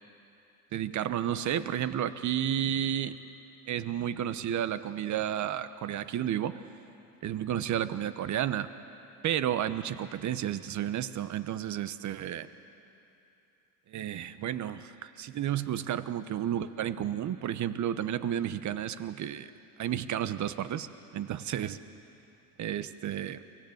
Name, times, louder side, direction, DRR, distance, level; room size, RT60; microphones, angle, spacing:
voice 1, 0.7-3.2 3.7-6.5 7.2-8.7 9.2-12.5 13.9-19.5 19.8-20.9 21.1-21.8 22.6-23.4, right 10 dB, 40° right, 13 dB, 1.1 m, -32 dB
24.0 x 17.0 x 8.0 m, 2.8 s
hypercardioid pair, 85°, 43 cm